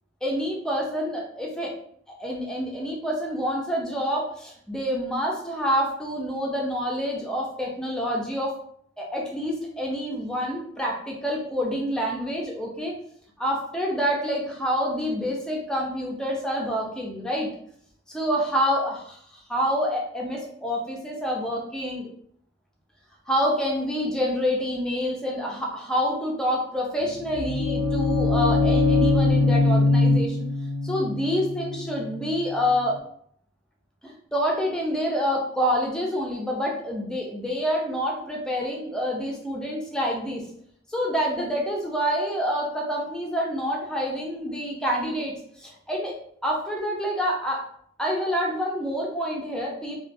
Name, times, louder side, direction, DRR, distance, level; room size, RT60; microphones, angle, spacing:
voice 1, 0.2-1.7 2.2-8.5 9.0-12.9 13.4-17.5 18.1-22.1 23.3-30.5 30.8-33.0 34.0-40.4 40.9-45.3 45.6-46.1 46.4-47.6 48.0-50.0, equal, 5° left, -2 dB, 0.4 m, -27 dB
sound 1, 27.0-32.9, left 3 dB, 85° left, 0.3 m, -22 dB
2.2 x 2.2 x 2.5 m, 0.65 s
head